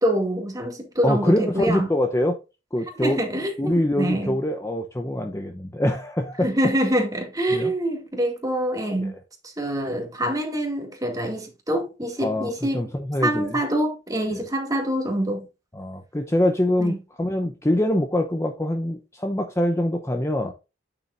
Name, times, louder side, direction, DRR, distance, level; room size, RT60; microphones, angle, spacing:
voice 1, 0.0-1.9 3.0-4.3 6.4-9.1 9.4-12.9 13.2-15.4 16.8-17.0, right 1 dB, 20° right, 2.1 m, -25 dB
voice 2, 1.0-2.4 2.7-3.2 3.6-6.5 7.5-7.7 9.0-9.2 12.2-13.6 15.7-20.5, left 1 dB, 15° left, 0.7 m, -24 dB
9.1 x 6.9 x 2.5 m
head